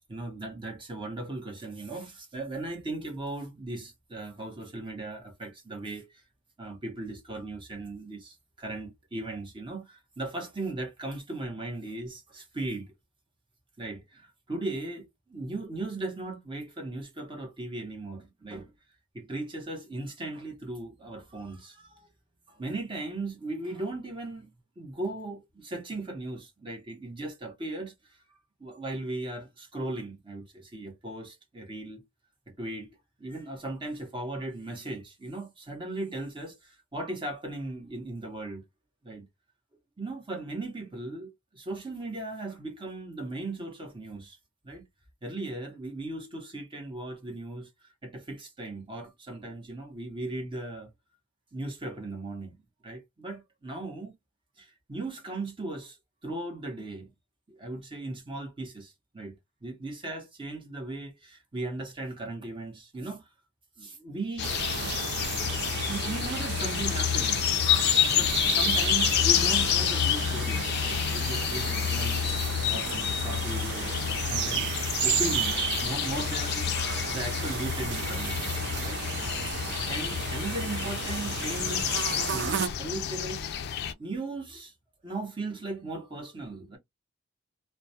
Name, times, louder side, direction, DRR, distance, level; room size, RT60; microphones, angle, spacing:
voice 1, 0.1-6.1 6.6-12.9 13.8-18.7 19.1-22.1 22.5-28.2 28.6-32.0 32.5-38.6 39.0-39.3 40.0-44.4 44.6-44.8 45.2-47.7 48.0-50.9 51.5-52.6 52.8-54.1 54.6-56.0 56.2-57.1 57.5-63.3 63.8-64.5 65.7-67.4 68.1-76.7 77.0-78.5 78.8-79.1 79.8-82.0 82.3-83.6 84.0-84.7 85.0-86.8, right 2 dB, 25° right, 0.8 m, -37 dB
sound 1, 64.4-83.9, left 10 dB, 50° left, 0.3 m, -29 dB
sound 2, 64.4-82.7, right 8 dB, 55° right, 0.4 m, -33 dB
2.2 x 2.1 x 2.7 m
head